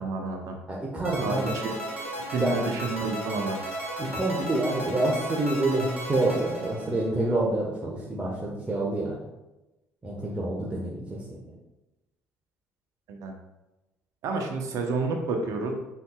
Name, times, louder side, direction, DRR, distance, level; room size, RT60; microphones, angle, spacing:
voice 1, 0.0-0.6 1.2-1.8 2.3-3.6 13.1-13.3 14.2-15.7, right 3 dB, 55° right, 2 dB, 1.0 m, -30 dB
voice 2, 0.7-1.5 2.4-2.6 4.0-9.3 10.0-11.5, right 2 dB, 20° right, -4 dB, 1.4 m, -27 dB
sound 1, 1.0-7.3, right 1 dB, 90° right, 1.1 m, -35 dB
8.2 x 5.8 x 2.4 m, 1.0 s
figure-of-eight pair, 55°, 7 cm